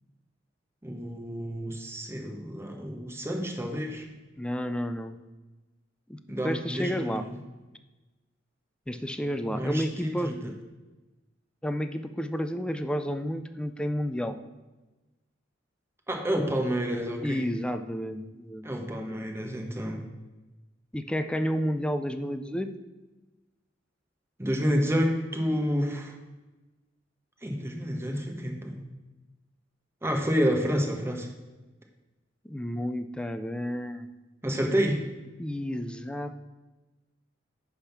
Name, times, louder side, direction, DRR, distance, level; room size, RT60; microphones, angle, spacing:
voice 1, 0.8-4.0 6.3-7.3 9.5-10.4 16.1-17.5 18.6-20.0 24.4-26.1 27.4-28.8 30.0-31.3 34.4-35.0, equal, 15° right, 2 dB, 1.1 m, -29 dB
voice 2, 4.4-5.2 6.1-7.3 8.9-10.3 11.6-14.4 17.2-18.9 20.9-22.7 32.4-34.1 35.4-36.3, equal, 5° left, 9 dB, 0.4 m, -31 dB
9.9 x 3.6 x 5.8 m, 1.1 s
head